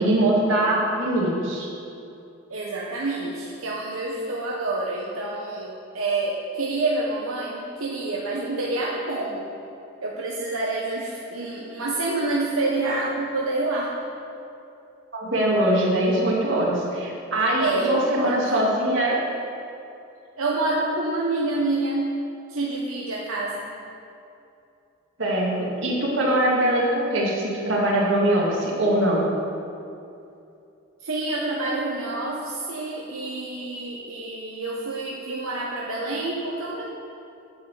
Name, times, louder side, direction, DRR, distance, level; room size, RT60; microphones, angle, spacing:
voice 1, 0.0-1.7 15.1-19.2 25.2-29.2, right 1 dB, 65° right, -4 dB, 2.2 m, -22 dB
voice 2, 2.5-9.5 10.0-13.9 17.6-18.5 20.4-22.2 22.5-23.7 31.0-36.8, right 2 dB, 85° right, -4 dB, 1.0 m, -27 dB
10.0 x 4.8 x 7.5 m, 2.7 s
head